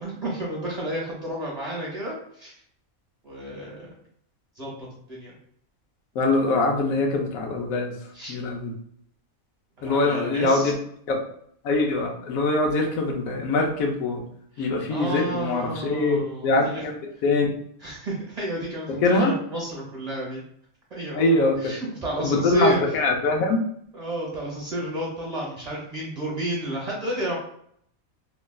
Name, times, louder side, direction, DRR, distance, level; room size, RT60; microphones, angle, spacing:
voice 1, 0.0-2.6 3.2-3.9 4.6-5.3 8.1-8.4 9.8-10.7 14.5-16.8 17.8-20.4 20.9-22.9 23.9-27.4, right 1 dB, 35° right, -5 dB, 0.8 m, -31 dB
voice 2, 6.1-7.9 8.3-8.7 9.8-10.7 11.1-11.2 11.6-14.2 14.6-17.5 19.0-19.3 21.1-21.5 22.2-23.6, left 2 dB, 90° left, 1 dB, 1.1 m, -23 dB
3.1 x 2.3 x 2.2 m, 0.67 s
omnidirectional pair, 1.4 m